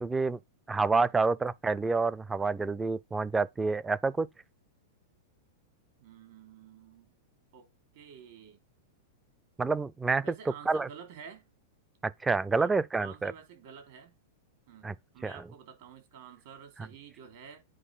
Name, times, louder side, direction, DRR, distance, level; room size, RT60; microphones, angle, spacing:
voice 1, 0.0-0.4 0.7-4.3 9.6-10.2 10.7-10.9 12.0-13.3 14.8-14.9 15.2-15.3, right 4 dB, 10° right, 0.4 m, -28 dB
voice 2, 1.1-1.5 6.0-7.1 7.5-7.7 7.9-8.6 10.2-11.5 12.5-14.2 14.7-17.6, right 7 dB, 60° right, 3.5 m, -50 dB
8.9 x 4.2 x 5.4 m
supercardioid pair, 140°, 0 cm